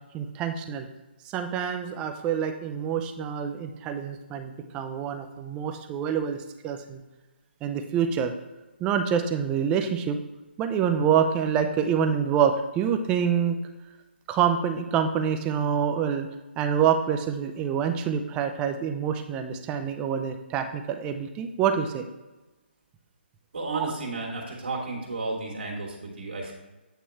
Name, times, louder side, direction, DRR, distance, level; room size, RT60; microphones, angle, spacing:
voice 1, 0.1-0.9 1.2-7.0 7.6-8.3 8.8-10.2 10.6-13.6 14.3-16.3 16.6-22.0 23.7-23.9, right 8 dB, 15° right, 7 dB, 0.4 m, -26 dB
voice 2, 23.5-26.5, right 3 dB, 75° right, -2 dB, 1.8 m, -32 dB
8.4 x 3.0 x 4.5 m, 1.1 s
figure-of-eight pair, 150°, 6 cm